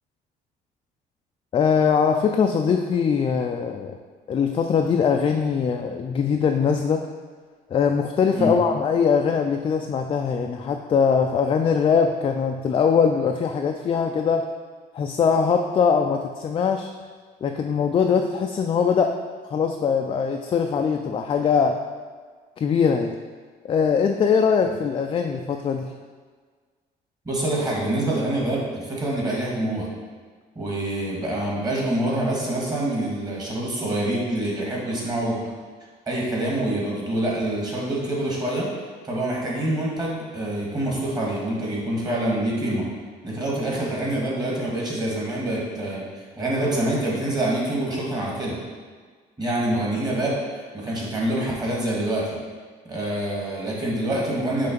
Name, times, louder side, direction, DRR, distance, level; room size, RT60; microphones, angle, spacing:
voice 1, 1.5-4.0 4.3-7.0 7.7-14.4 14.9-16.9 17.4-19.2 19.5-21.8 22.6-23.2 23.7-25.9, left 6 dB, 30° left, 4 dB, 0.3 m, -21 dB
voice 2, 27.3-29.9 30.6-35.4 36.1-38.7 39.0-42.9 43.2-46.0 46.4-48.6 49.4-52.4 52.9-54.7, right 1 dB, 25° right, -4 dB, 1.7 m, -26 dB
5.7 x 3.3 x 5.2 m, 1.5 s
cardioid pair, 110°, 17 cm